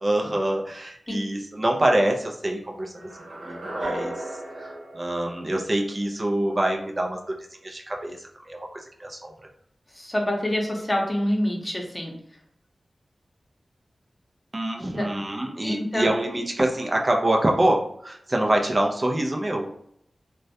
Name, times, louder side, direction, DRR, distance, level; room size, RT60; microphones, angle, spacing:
voice 1, 0.0-7.3 7.6-9.3 14.5-19.7, right 1 dB, 40° right, 1 dB, 0.4 m, -26 dB
sound 1, 3.0-6.1, right 1 dB, 90° right, 0.8 m, -36 dB
voice 2, 9.9-12.2 14.8-15.1 15.6-16.1, left 1 dB, 35° left, 0 dB, 0.7 m, -26 dB
2.1 x 2.1 x 2.7 m, 0.69 s
cardioid pair, 40°, 0 cm